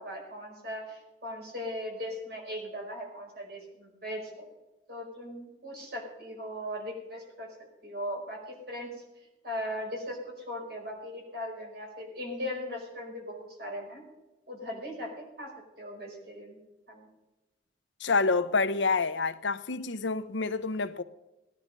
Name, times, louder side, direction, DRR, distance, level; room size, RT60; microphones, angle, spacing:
voice 1, 0.0-4.5 4.9-7.5 7.8-9.0 9.4-14.0 14.5-15.5 15.8-16.6 16.9-17.1, equal, 60° right, 5.2 m, -38 dB
voice 2, 18.0-21.0, left 4 dB, 85° left, 0.8 m, -28 dB
18.0 x 10.5 x 5.4 m
head